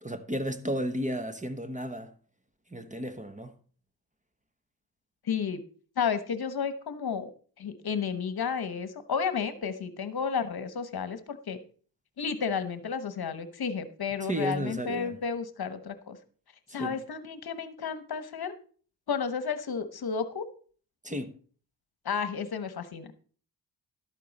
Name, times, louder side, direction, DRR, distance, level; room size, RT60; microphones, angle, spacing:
voice 1, 0.0-2.1 2.7-3.5 14.2-15.2 16.7-17.0 21.0-21.3, equal, 15° right, 0.9 m, -33 dB
voice 2, 5.3-5.6 6.0-7.3 7.6-11.6 12.2-16.2 16.7-18.5 19.1-20.4 22.0-23.2, left 6 dB, 55° left, 1.1 m, -32 dB
12.0 x 8.4 x 4.1 m
cardioid pair, 90°, 45 cm